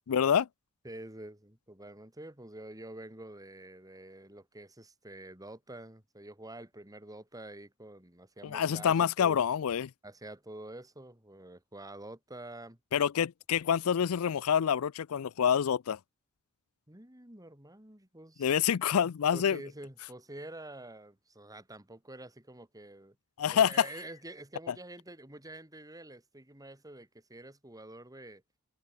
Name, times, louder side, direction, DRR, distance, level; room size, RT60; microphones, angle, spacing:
voice 1, 0.1-0.5 8.4-9.9 12.9-16.0 18.4-19.6 23.4-23.9 24.7-24.8, left 8 dB, 70° left, 0.4 m, -27 dB
voice 2, 0.8-9.5 10.0-12.8 16.9-18.5 19.3-23.2 23.5-28.4, right 1 dB, 15° right, 4.1 m, -47 dB
head